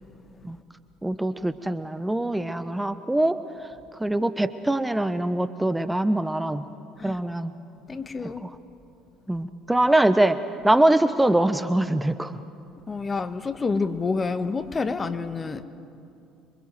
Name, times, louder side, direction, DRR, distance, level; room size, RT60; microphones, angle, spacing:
voice 1, 1.0-3.4 4.0-6.6 7.0-7.5 8.4-8.5 9.3-12.3, right 1 dB, 10° right, 11 dB, 1.1 m, -23 dB
voice 2, 7.9-8.4 12.9-15.6, left 4 dB, 30° left, 10 dB, 1.5 m, -28 dB
28.0 x 24.0 x 7.8 m, 2.6 s
hypercardioid pair, 60°, 0 cm